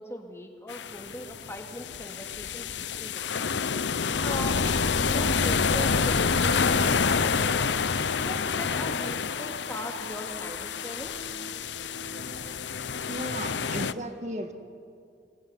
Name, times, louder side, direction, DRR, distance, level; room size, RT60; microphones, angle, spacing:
voice 1, 0.0-2.7 3.0-3.6 4.0-7.7 8.2-11.2, equal, 15° left, 3 dB, 2.5 m, -39 dB
sound 1, 0.7-13.9, left 6 dB, 90° left, 0.7 m, -28 dB
sound 2, 2.8-14.0, left 1 dB, 60° left, 1.6 m, -47 dB
sound 3, 4.0-9.3, right 1 dB, 40° left, 3.2 m, -35 dB
voice 2, 13.1-14.5, right 1 dB, 40° right, 6 dB, 2.0 m, -35 dB
28.0 x 20.5 x 9.9 m, 2.3 s
head